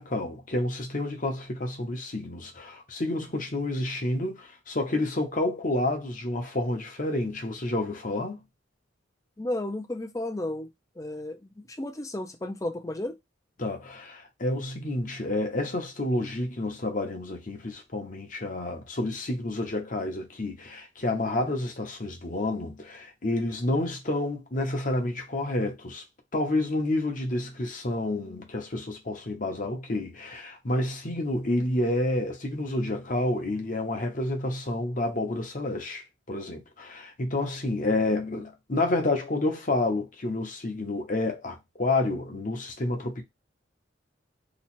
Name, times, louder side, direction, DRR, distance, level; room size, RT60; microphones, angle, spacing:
voice 1, 0.0-8.4 13.6-26.0 26.3-43.2, left 2 dB, 40° left, 0.9 m, -29 dB
voice 2, 9.4-10.7 11.0-13.2, left 1 dB, 15° left, 0.5 m, -33 dB
3.0 x 2.3 x 4.2 m
head